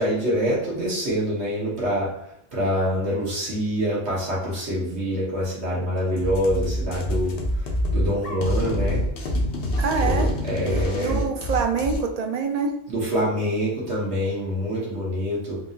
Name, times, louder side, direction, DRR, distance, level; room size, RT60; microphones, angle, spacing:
voice 1, 0.0-2.1 2.5-7.4 7.9-9.1 10.0-11.3 12.9-15.6, equal, 70° right, -6 dB, 1.3 m, -25 dB
sound 1, 6.2-12.0, equal, 60° left, 0.8 m, -26 dB
voice 2, 9.8-10.3 10.6-12.7, right 5 dB, 55° right, 3 dB, 0.4 m, -25 dB
4.0 x 2.6 x 2.7 m, 0.75 s
omnidirectional pair, 1.2 m